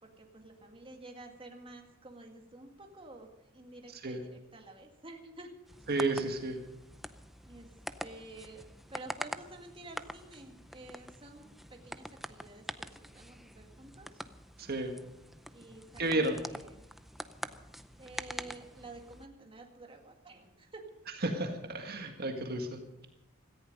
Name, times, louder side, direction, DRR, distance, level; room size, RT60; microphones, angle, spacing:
voice 1, 0.0-5.5 7.5-7.7 8.0-14.2 15.5-16.8 18.0-20.8, right 2 dB, 25° right, 3 dB, 1.9 m, -51 dB
sound 1, 5.7-19.3, equal, ahead, 0.6 m, -45 dB
voice 2, 5.9-6.6 14.6-14.9 16.0-16.4 21.2-23.1, right 2 dB, 50° right, 4 dB, 1.7 m, -32 dB
17.5 x 14.5 x 5.3 m, 0.88 s
head